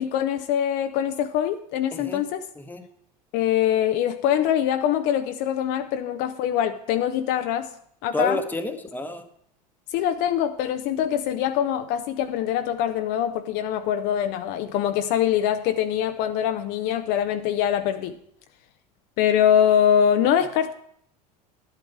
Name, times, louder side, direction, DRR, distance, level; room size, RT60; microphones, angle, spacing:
voice 1, 0.0-2.5 3.3-7.7 8.0-8.4 9.9-18.2 19.2-20.7, left 10 dB, 55° left, 8 dB, 0.6 m, -23 dB
voice 2, 1.9-2.2 2.6-2.9 8.1-9.3, left 1 dB, 10° left, 6 dB, 1.2 m, -29 dB
11.5 x 8.1 x 4.7 m, 0.67 s
hypercardioid pair, 80°, 21 cm